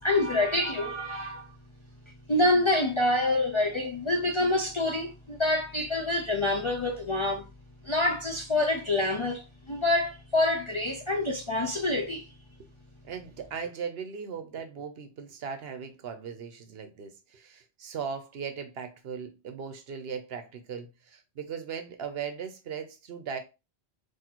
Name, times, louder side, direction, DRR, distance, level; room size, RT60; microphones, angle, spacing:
voice 1, 0.0-1.5 2.3-7.5 7.8-12.3, left 2 dB, 40° left, 0.5 m, -27 dB
voice 2, 13.0-23.4, right 6 dB, 65° right, 0.8 m, -38 dB
4.0 x 2.6 x 2.9 m
omnidirectional pair, 1.2 m